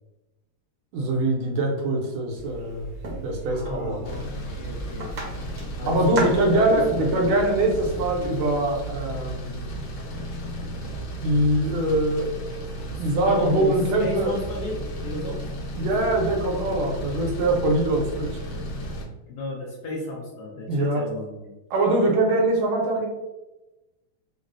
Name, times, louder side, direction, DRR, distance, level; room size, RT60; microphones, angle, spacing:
voice 1, 0.9-2.9 3.2-4.0 5.8-9.6 11.2-12.4 12.9-14.3 15.7-18.4 20.7-21.0 21.7-23.1, right 1 dB, 80° right, 0 dB, 1.5 m, -23 dB
sound 1, 2.4-8.4, right 2 dB, 60° right, 1.0 m, -36 dB
voice 2, 3.5-5.1 5.8-7.3 13.2-15.4 19.3-21.5, left 1 dB, 70° left, -3 dB, 1.0 m, -33 dB
sound 2, 4.0-19.0, right 1 dB, 85° left, 1.6 m, -34 dB
3.7 x 2.0 x 2.5 m, 1.0 s
omnidirectional pair, 2.2 m